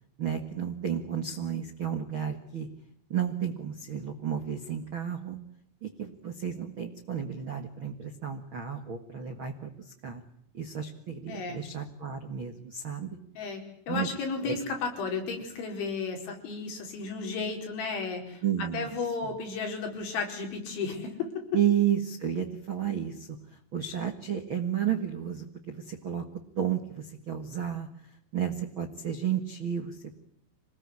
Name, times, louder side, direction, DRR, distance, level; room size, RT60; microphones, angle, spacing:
voice 1, 0.2-2.7 3.1-5.4 5.8-10.2 10.5-13.2 13.9-14.1 14.4-14.6 18.4-18.9 19.2-19.3 21.5-23.4 23.7-26.2 26.6-27.9 28.3-30.2, right 9 dB, 70° right, 6 dB, 1.2 m, -32 dB
voice 2, 11.3-11.6 13.4-18.4 18.7-21.5, left 4 dB, 70° left, 3 dB, 7.1 m, -34 dB
27.0 x 19.5 x 9.9 m, 0.71 s
omnidirectional pair, 5.5 m